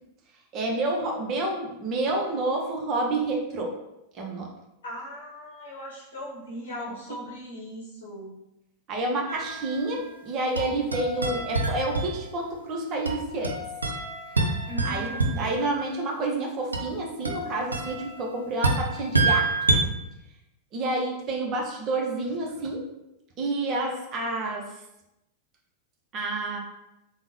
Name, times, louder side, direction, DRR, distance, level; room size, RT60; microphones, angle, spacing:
voice 1, 0.5-3.7 4.1-4.5 8.9-13.6 14.8-19.6 20.7-22.9 23.4-24.8 26.1-26.6, right 2 dB, 35° right, 0 dB, 0.6 m, -29 dB
voice 2, 4.8-8.4 14.7-15.5, equal, 65° left, -6 dB, 0.8 m, -39 dB
sound 1, 9.3-10.1 10.6-12.5 13.0-15.7 16.7-19.8, right 2 dB, 80° right, 0.4 m, -27 dB
3.5 x 2.0 x 3.1 m, 0.90 s
figure-of-eight pair, 90°, 0 cm